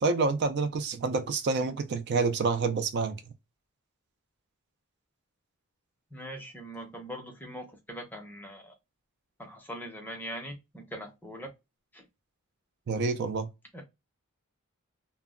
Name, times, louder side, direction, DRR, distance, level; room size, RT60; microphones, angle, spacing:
voice 1, 0.0-3.2 12.9-13.5, right 4 dB, 50° right, 0.4 m, -28 dB
voice 2, 6.1-8.7 9.4-11.5 11.9-12.1 13.7-13.8, equal, 10° left, 0.6 m, -41 dB
2.1 x 2.0 x 3.5 m
head